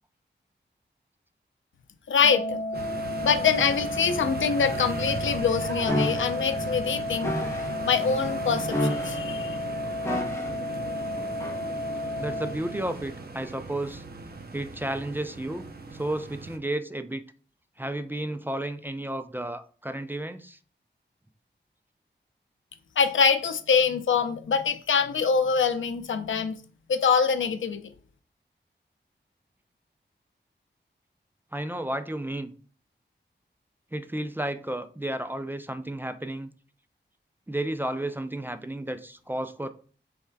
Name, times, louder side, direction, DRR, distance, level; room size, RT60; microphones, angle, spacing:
voice 1, 2.1-2.6 3.2-7.4 7.8-9.6 23.0-26.6 26.9-27.8, left 6 dB, 90° left, 10 dB, 0.5 m, -24 dB
Organ, 2.2-13.2, left 1 dB, 45° left, 0.8 m, -33 dB
sound 1, 2.7-16.6, right 3 dB, 55° right, 0.6 m, -37 dB
sound 2, 5.9-6.3 7.2-7.7 8.7-9.3 10.0-10.6 11.4-11.6, left 1 dB, 15° left, 1.0 m, -29 dB
voice 2, 12.2-14.0 14.5-15.7 15.9-17.2 17.8-20.6 31.5-32.5 33.9-36.5 37.5-39.7, right 1 dB, 10° right, 10 dB, 0.3 m, -32 dB
3.5 x 3.2 x 4.5 m, 0.41 s
wide cardioid pair, 100°, 19 cm